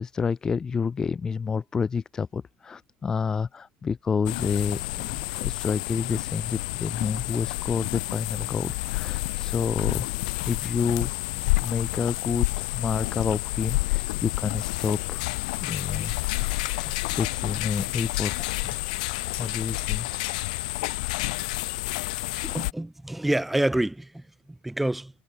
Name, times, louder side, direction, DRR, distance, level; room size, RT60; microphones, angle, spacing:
voice 1, 0.0-10.1 10.5-15.2 15.6-18.6 19.4-20.1, left 5 dB, 10° left, 3.0 m, -29 dB
sound 1, 4.2-22.7, left 23 dB, 55° left, 2.7 m, -29 dB
voice 2, 22.4-25.1, right 1 dB, 5° right, 7.4 m, -28 dB
supercardioid pair, 180°, 5 cm